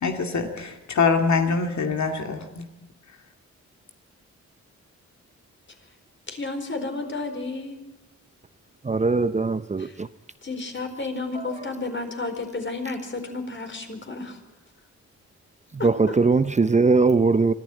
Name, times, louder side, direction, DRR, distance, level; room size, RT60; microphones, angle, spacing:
voice 1, 0.0-2.6, left 4 dB, 70° left, 2.3 m, -24 dB
voice 2, 6.3-7.8 9.8-9.9 10.4-14.4 15.8-16.1, left 3 dB, 40° left, 4.4 m, -32 dB
voice 3, 8.8-10.1 11.3-11.6 15.8-17.5, right 4 dB, 25° right, 0.6 m, -20 dB
24.5 x 14.0 x 9.1 m
cardioid pair, 75°, 30 cm